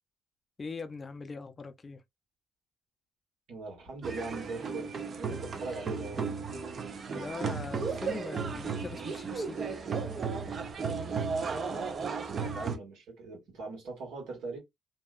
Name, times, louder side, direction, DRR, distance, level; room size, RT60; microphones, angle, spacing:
voice 1, 0.6-2.0 7.1-9.6, left 4 dB, 35° left, 0.4 m, -41 dB
voice 2, 3.5-6.2 11.4-14.6, right 3 dB, 85° right, 1.4 m, -41 dB
sound 1, 4.0-12.8, right 5 dB, 50° right, 0.5 m, -35 dB
2.7 x 2.2 x 2.4 m
cardioid pair, 90°, 0 cm